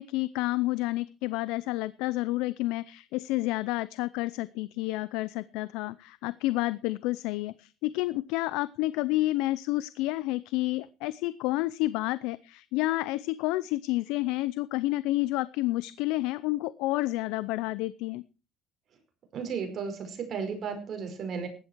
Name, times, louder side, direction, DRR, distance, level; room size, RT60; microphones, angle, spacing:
voice 1, 0.0-18.2, left 18 dB, 90° left, 17 dB, 0.6 m, -30 dB
voice 2, 19.3-21.5, right 6 dB, 45° right, 6 dB, 5.2 m, -34 dB
15.5 x 11.5 x 4.6 m, 0.34 s
cardioid pair, 130°, 0 cm